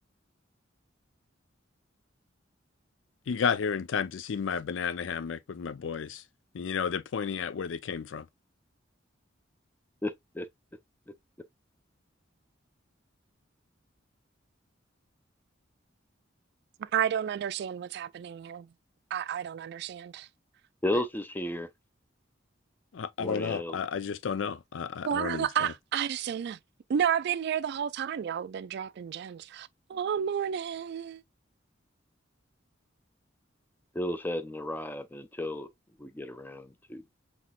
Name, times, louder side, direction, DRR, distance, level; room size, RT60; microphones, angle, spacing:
voice 1, 3.3-6.2 6.5-8.2 22.9-25.7, left 6 dB, 75° left, 0.4 m, -32 dB
voice 2, 10.0-10.5 20.8-21.7 23.2-23.8 33.9-35.7 36.0-37.0, left 1 dB, 10° left, 0.5 m, -33 dB
voice 3, 16.8-18.7 19.1-20.3 25.1-26.6 26.9-31.2, right 8 dB, 60° right, 0.3 m, -31 dB
5.8 x 2.9 x 2.3 m
head